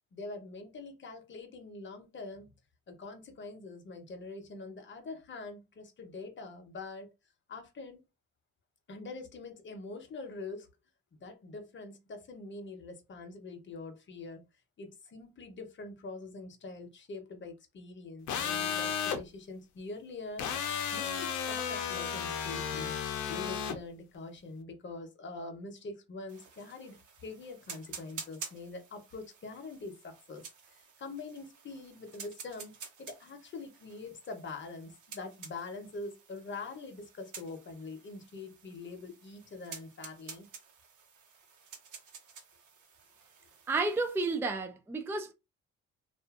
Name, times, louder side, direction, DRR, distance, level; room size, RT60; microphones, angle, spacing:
voice 1, 0.1-2.5 2.9-7.1 7.5-8.0 8.9-10.7 11.1-14.4 14.8-22.9 23.3-40.5, left 3 dB, 40° left, 0.8 m, -44 dB
sound 1, 18.3-19.2 20.4-23.8, left 7 dB, 75° left, 0.6 m, -33 dB
sound 2, 26.3-44.4, right 6 dB, 90° right, 0.9 m, -50 dB
voice 2, 43.7-45.3, right 3 dB, 10° right, 0.4 m, -31 dB
2.5 x 2.5 x 2.4 m
cardioid pair, 90°, 30 cm